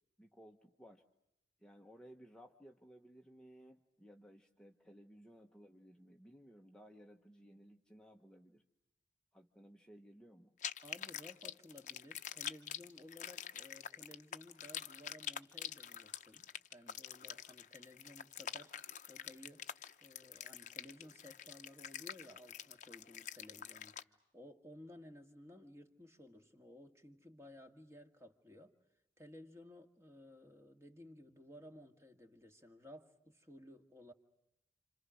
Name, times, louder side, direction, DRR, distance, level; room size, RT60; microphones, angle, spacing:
voice 1, 0.2-1.0 1.6-8.6 9.3-10.5, equal, 5° left, 1.0 m, -59 dB
sound 1, 10.6-24.0, left 9 dB, 45° left, 0.9 m, -46 dB
voice 2, 10.8-19.7 20.0-24.0 24.3-28.8 29.2-34.1, left 1 dB, 15° right, 1.8 m, -57 dB
30.0 x 27.5 x 6.3 m
head